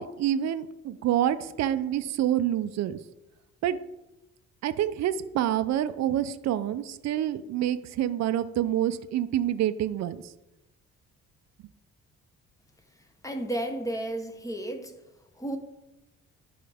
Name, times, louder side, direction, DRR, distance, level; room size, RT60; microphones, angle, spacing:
voice 1, 0.0-3.0 3.6-3.8 4.6-10.2, right 11 dB, 65° right, 12 dB, 0.5 m, -27 dB
voice 2, 13.2-14.9 15.4-15.6, right 1 dB, 10° left, 5 dB, 1.0 m, -32 dB
10.5 x 4.7 x 3.5 m, 0.96 s
cardioid pair, 90°, 30 cm